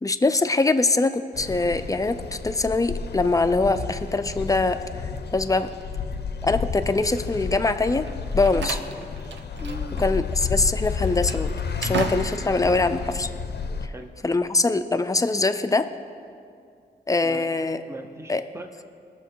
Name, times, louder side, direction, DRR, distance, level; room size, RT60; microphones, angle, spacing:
voice 1, 0.0-4.8 5.3-5.7 6.4-8.1 8.3-8.8 10.0-11.5 11.8-13.3 14.2-15.9 17.1-17.8 18.3-18.4, left 3 dB, 20° left, 9 dB, 0.6 m, -23 dB
sound 1, 1.3-13.9, left 5 dB, 65° left, 0.7 m, -31 dB
Slam, 8.0-10.1 10.3-10.5 11.0-12.6, right 6 dB, 85° right, 0.8 m, -34 dB
voice 2, 9.6-10.1 13.9-14.1 17.2-17.5 17.9-18.8, right 1 dB, 15° right, 4 dB, 0.9 m, -39 dB
20.0 x 6.8 x 4.6 m, 2.3 s
cardioid pair, 85°, 18 cm